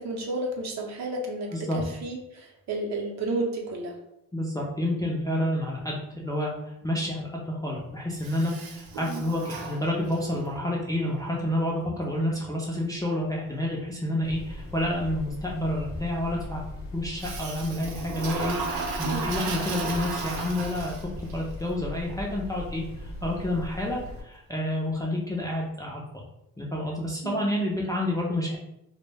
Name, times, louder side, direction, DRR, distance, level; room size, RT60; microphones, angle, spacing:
voice 1, 0.0-4.0 9.0-9.2 19.0-19.3 27.2-27.5, right 2 dB, 50° right, 1 dB, 0.6 m, -32 dB
voice 2, 1.5-1.8 4.3-16.6 16.9-26.0 26.6-28.6, left 1 dB, 10° left, -4 dB, 0.3 m, -29 dB
Toilet flush, 8.2-10.4 17.2-21.3, right 4 dB, 90° right, 0.5 m, -34 dB
sound 1, 14.2-24.2, left 2 dB, 50° left, 0.6 m, -39 dB
2.1 x 2.0 x 3.2 m, 0.82 s
cardioid pair, 120°, 35 cm